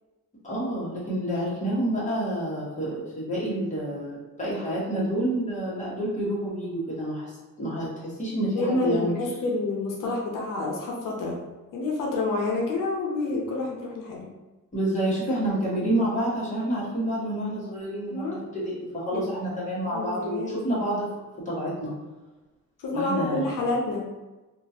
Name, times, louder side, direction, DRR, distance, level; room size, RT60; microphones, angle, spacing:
voice 1, 0.4-9.1 14.7-21.1 21.4-21.9 22.9-23.5, right 1 dB, 25° left, -8 dB, 1.4 m, -28 dB
voice 2, 8.6-11.4 11.7-14.3 18.1-18.4 19.1-19.2 19.9-20.6 22.8-24.1, left 2 dB, 85° left, -2 dB, 0.6 m, -28 dB
2.9 x 2.5 x 2.8 m, 1.2 s
cardioid pair, 120°, 31 cm